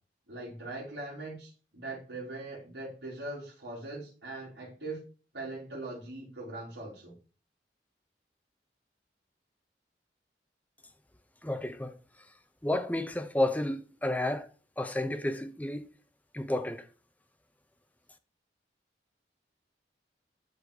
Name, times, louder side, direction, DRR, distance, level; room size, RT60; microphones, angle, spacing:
voice 1, 0.3-5.0 5.3-7.1, right 2 dB, 80° right, 4.0 m, -41 dB
voice 2, 11.4-11.9 12.6-14.5 14.8-15.9 16.3-16.8, left 1 dB, 10° left, 0.7 m, -31 dB
12.0 x 4.2 x 4.9 m
head